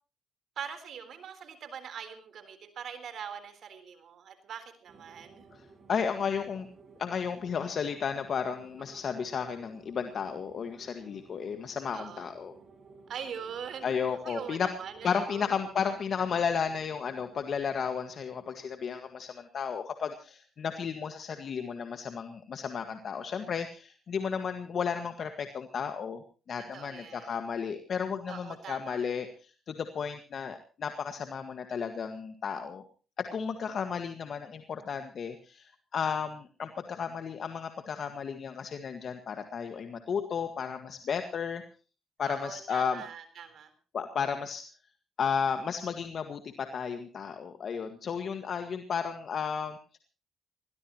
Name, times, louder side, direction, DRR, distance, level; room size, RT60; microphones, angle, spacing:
voice 1, 0.6-5.4 8.9-9.0 11.9-12.3 13.1-15.4 26.7-27.4 28.3-29.0 42.2-43.7, right 7 dB, 65° right, 9 dB, 3.8 m, -42 dB
sound 1, 4.9-19.4, right 4 dB, 50° right, 6.6 m, -57 dB
voice 2, 5.9-6.7 7.0-12.5 13.8-14.7 15.0-26.2 26.5-29.3 29.7-32.8 33.2-41.6 42.2-43.0 43.9-44.6 45.2-50.0, left 6 dB, 55° left, 7 dB, 1.7 m, -33 dB
21.5 x 17.5 x 3.0 m, 0.35 s
cardioid pair, 90°, 0 cm